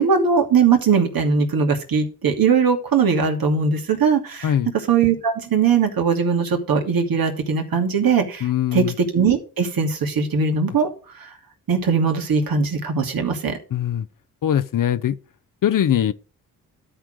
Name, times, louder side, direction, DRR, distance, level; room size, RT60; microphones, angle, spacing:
voice 1, 0.0-4.5 4.9-8.8 9.1-10.9 11.2-11.3 11.7-13.6, right 5 dB, 65° right, 2.7 m, -20 dB
voice 2, 8.4-8.9 13.7-14.1 14.4-15.2 15.6-16.1, left 10 dB, 55° left, 0.8 m, -21 dB
12.5 x 4.7 x 6.4 m
supercardioid pair, 45°, 38 cm